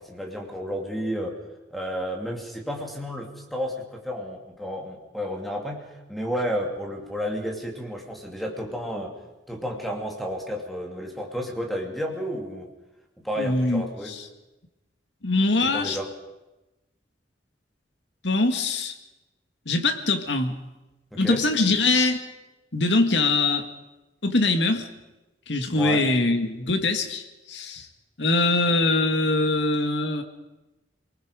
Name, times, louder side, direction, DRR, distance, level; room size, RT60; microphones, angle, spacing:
voice 1, 0.0-1.4 1.7-9.1 9.5-12.7 13.2-14.1 15.6-16.1 21.1-21.5 25.7-26.1, equal, ahead, 0 dB, 2.8 m, -31 dB
voice 2, 13.4-14.2 15.2-16.0 18.2-18.9 19.7-20.6 21.2-22.2 22.7-23.7 24.2-24.9 25.5-27.9 28.2-30.2, left 2 dB, 85° left, 6 dB, 2.1 m, -23 dB
27.0 x 20.0 x 5.3 m, 1.0 s
head